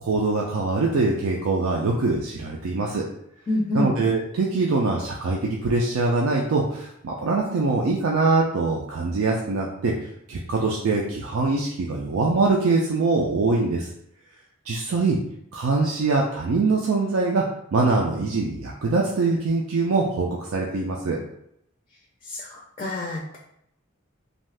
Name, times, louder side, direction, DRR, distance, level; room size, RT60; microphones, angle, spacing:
voice 1, 0.0-3.0 3.7-13.9 14.7-15.2 15.5-17.4 17.7-21.2, right 3 dB, 80° right, -2 dB, 0.4 m, -23 dB
voice 2, 3.5-3.9 22.3-23.4, left 1 dB, 30° left, -2 dB, 0.4 m, -27 dB
2.6 x 2.3 x 3.2 m, 0.74 s
head